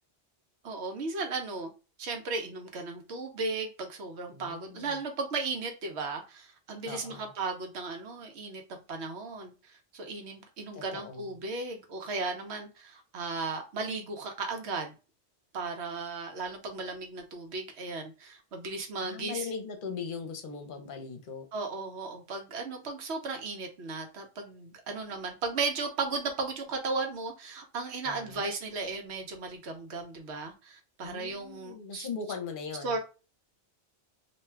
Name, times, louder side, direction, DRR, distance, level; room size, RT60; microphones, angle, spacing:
voice 1, 0.6-1.7 2.0-14.9 15.5-19.5 21.5-32.1 32.8-33.0, right 3 dB, 75° right, 4 dB, 1.0 m, -36 dB
voice 2, 4.3-5.0 6.9-7.3 10.7-11.3 19.0-21.5 28.0-28.4 31.0-33.0, left 5 dB, 55° left, 5 dB, 0.8 m, -40 dB
2.5 x 2.3 x 3.2 m, 0.32 s
omnidirectional pair, 1.2 m